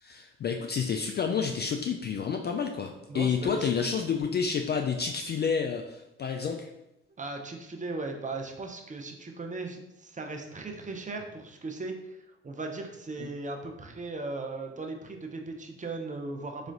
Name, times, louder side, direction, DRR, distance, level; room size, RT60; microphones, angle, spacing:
voice 1, 0.0-6.7 13.2-13.3, left 6 dB, 30° left, 4 dB, 0.4 m, -29 dB
voice 2, 3.1-4.0 7.2-12.2 12.4-16.7, right 3 dB, 20° right, 2 dB, 0.7 m, -37 dB
4.8 x 3.1 x 2.6 m, 0.89 s
hypercardioid pair, 45°, 34 cm